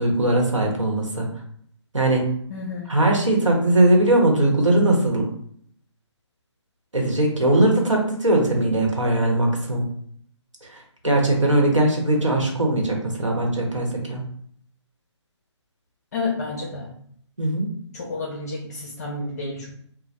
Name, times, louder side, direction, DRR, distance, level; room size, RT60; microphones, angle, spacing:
voice 1, 0.0-1.3 1.9-2.4 2.9-5.3 6.9-9.9 11.0-14.2 17.4-17.7, right 1 dB, 85° right, 0 dB, 1.0 m, -20 dB
voice 2, 2.5-3.0 16.1-16.9 17.9-19.7, left 3 dB, 35° left, -3 dB, 0.6 m, -30 dB
2.8 x 2.1 x 3.3 m, 0.64 s
figure-of-eight pair, 145°, 16 cm